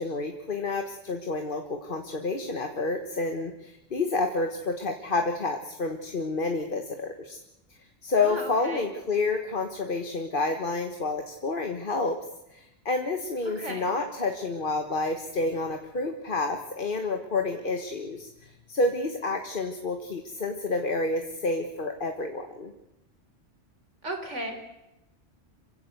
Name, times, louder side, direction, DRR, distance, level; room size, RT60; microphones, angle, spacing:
voice 1, 0.0-7.4 8.0-12.2 12.5-18.3 18.7-22.7, left 3 dB, 45° left, 5 dB, 1.6 m, -29 dB
voice 2, 8.2-8.9 13.5-13.9 24.0-24.5, right 2 dB, 85° right, 5 dB, 4.1 m, -35 dB
27.0 x 16.0 x 8.0 m, 0.94 s
omnidirectional pair, 1.2 m